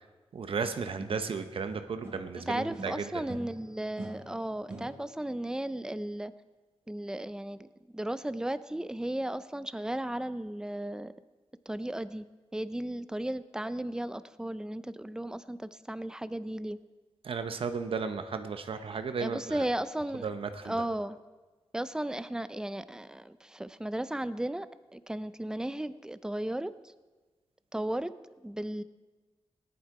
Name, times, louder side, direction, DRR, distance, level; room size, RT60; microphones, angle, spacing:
voice 1, 0.3-3.2 17.2-19.6 20.2-20.8, right 5 dB, 65° right, 8 dB, 0.8 m, -34 dB
sound 1, 0.6-2.4 2.7-5.3, right 2 dB, 25° right, 2.2 m, -45 dB
voice 2, 2.5-6.3 6.9-7.7 7.9-11.1 11.7-12.3 12.5-16.8 19.2-20.3 20.6-21.2 21.7-26.7 27.7-28.1 28.4-28.8, right 1 dB, 5° right, 14 dB, 0.4 m, -35 dB
18.0 x 11.0 x 4.8 m, 1.3 s
wide cardioid pair, 140°, 10 cm